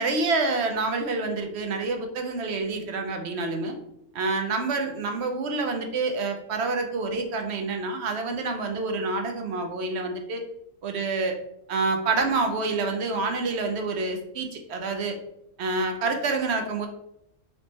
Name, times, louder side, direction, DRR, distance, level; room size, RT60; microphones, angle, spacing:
voice 1, 0.0-3.8 4.1-10.4 10.8-11.4 11.7-15.2 15.6-16.9, right 3 dB, 65° right, 5 dB, 0.9 m, -27 dB
3.4 x 3.1 x 3.9 m, 0.78 s
omnidirectional pair, 1.3 m